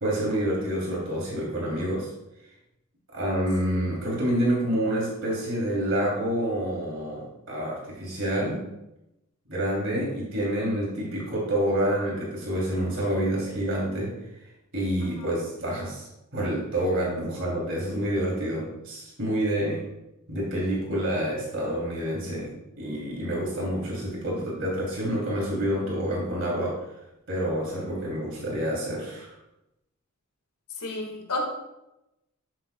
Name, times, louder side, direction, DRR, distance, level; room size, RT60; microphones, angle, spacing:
voice 1, 0.0-2.1 3.1-8.6 9.5-14.1 14.7-19.8 20.3-26.7 27.3-29.4, right 1 dB, 60° right, -4 dB, 2.9 m, -28 dB
voice 2, 30.8-31.4, left 3 dB, 85° left, 0 dB, 1.7 m, -32 dB
12.0 x 7.7 x 2.2 m, 0.92 s
head